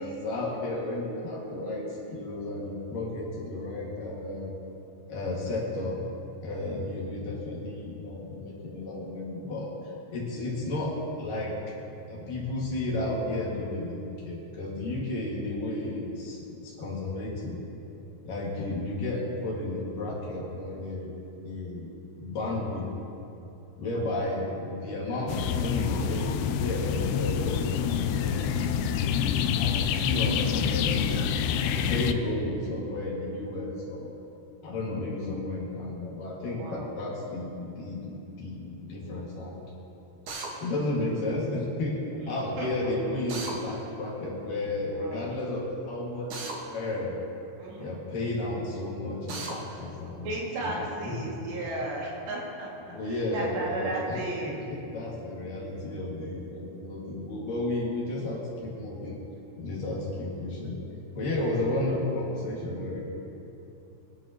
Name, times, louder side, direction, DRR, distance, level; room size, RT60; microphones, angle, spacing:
voice 1, 0.0-4.5 5.1-6.0 6.4-11.7 12.1-17.6 18.2-22.9 23.8-27.8 28.1-28.9 29.5-31.3 31.7-34.2 34.6-39.6 40.6-42.0 42.3-47.2 47.8-50.3 50.6-50.8 51.0-51.4 52.9-54.2 54.5-59.2 59.6-60.8 61.1-63.0, left 2 dB, 55° left, -5 dB, 3.4 m, -33 dB
sound 1, 25.3-32.1, left 8 dB, 80° left, 2.6 m, -27 dB
voice 2, 28.4-28.7 36.5-36.9 42.6-42.9 44.9-45.3 47.6-48.0 50.2-54.6, right 2 dB, 80° right, -4 dB, 4.5 m, -35 dB
Drill, 40.3-40.5 43.3-43.6 46.3-46.6 49.3-49.6, right 3 dB, 60° right, 2.4 m, -35 dB
23.0 x 11.0 x 3.0 m, 2.8 s
omnidirectional pair, 4.9 m